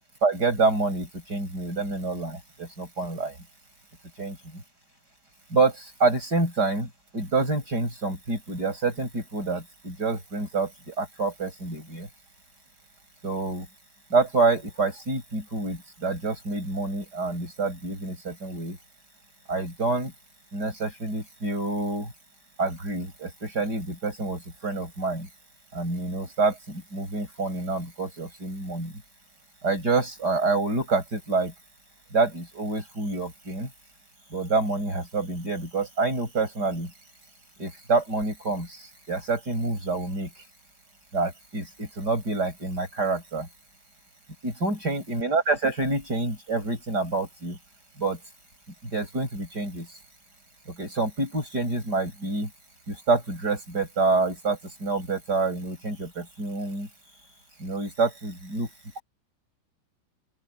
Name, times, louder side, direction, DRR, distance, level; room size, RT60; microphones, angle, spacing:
voice 1, 0.2-3.4 4.2-4.4 5.5-12.1 13.2-13.6 14.1-18.8 19.5-20.1 20.5-22.1 22.6-25.3 25.7-28.9 29.6-31.5 32.1-33.7 34.3-36.9 37.6-40.3 41.1-43.5 44.4-47.6 48.0-48.2 48.9-49.9 50.8-52.5 52.9-56.9 57.6-58.7 59.0-59.1, right 3 dB, 20° right, 8.3 m, -27 dB
open air
omnidirectional pair, 6.0 m